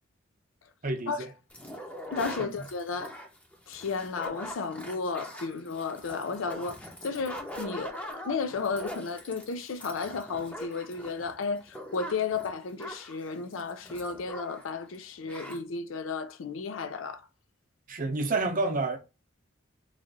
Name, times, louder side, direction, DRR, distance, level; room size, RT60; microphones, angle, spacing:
voice 1, 0.8-1.3 2.4-2.7 17.9-19.0, right 3 dB, 45° right, 0.7 m, -29 dB
sound 1, 1.5-14.7 14.9-15.0 15.3-15.6, equal, 5° left, 0.6 m, -42 dB
voice 2, 2.1-3.1 3.7-17.2, left 4 dB, 90° left, 0.5 m, -33 dB
3.1 x 2.5 x 3.9 m
head